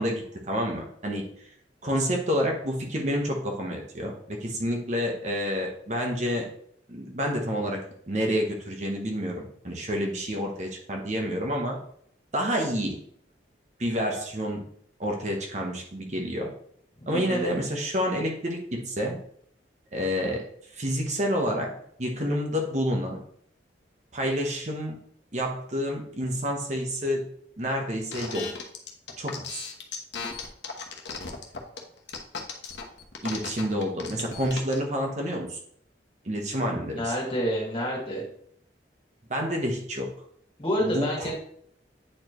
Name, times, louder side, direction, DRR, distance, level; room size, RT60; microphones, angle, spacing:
voice 1, 0.0-1.5 1.8-6.5 6.9-11.8 12.3-13.0 13.8-14.7 15.0-16.5 17.1-19.2 19.9-20.4 20.7-21.7 22.0-23.2 24.1-25.0 25.3-27.3 27.6-28.5 29.2-29.7 33.2-35.6 36.2-37.1 39.3-40.1 40.8-41.3, equal, 40° right, 1 dB, 1.0 m, -29 dB
voice 2, 17.0-17.4 37.0-38.2 40.6-41.3, equal, 30° left, -3 dB, 2.0 m, -28 dB
sound 1, 28.1-34.8, left 5 dB, 80° left, 1.0 m, -36 dB
8.8 x 4.3 x 3.0 m, 0.65 s
head